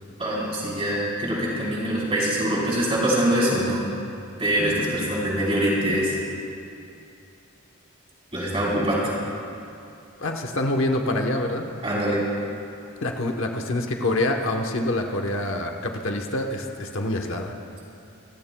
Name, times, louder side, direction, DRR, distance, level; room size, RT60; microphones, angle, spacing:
voice 1, 0.2-3.9 4.4-6.1 8.3-9.1 11.8-12.2, right 1 dB, 25° right, -6 dB, 4.0 m, -24 dB
voice 2, 10.2-11.6 13.0-17.5, left 1 dB, 60° left, 2 dB, 1.0 m, -26 dB
28.5 x 16.0 x 2.3 m, 2.6 s
head